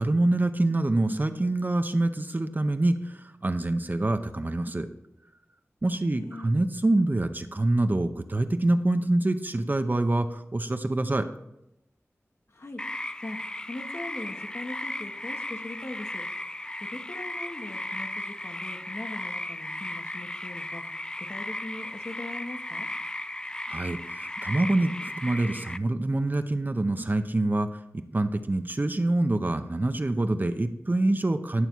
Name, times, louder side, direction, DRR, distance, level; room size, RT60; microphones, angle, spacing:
voice 1, 0.0-4.9 5.8-11.3 23.7-27.7 27.9-31.7, right 2 dB, 35° right, 8 dB, 0.7 m, -26 dB
voice 2, 6.0-6.5 12.5-12.8 13.2-16.3 16.8-20.8 21.3-22.9, left 2 dB, 60° left, 3 dB, 1.2 m, -40 dB
sound 1, 12.8-25.8, left 1 dB, 15° left, 0.3 m, -36 dB
11.0 x 6.9 x 4.5 m, 0.85 s
wide cardioid pair, 50°, 5 cm